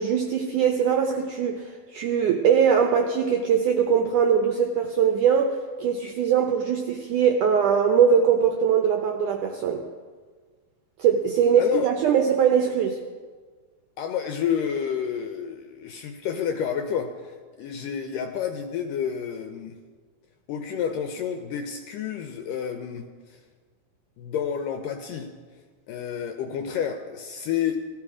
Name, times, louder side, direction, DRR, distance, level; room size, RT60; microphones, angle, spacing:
voice 1, 0.0-9.8 11.0-13.0, right 7 dB, 80° right, 4 dB, 1.8 m, -21 dB
voice 2, 11.6-11.9 14.0-19.8 20.5-23.4 24.2-25.3 25.9-27.9, left 8 dB, 75° left, 6 dB, 2.0 m, -30 dB
16.5 x 13.5 x 4.9 m, 1.5 s
omnidirectional pair, 4.6 m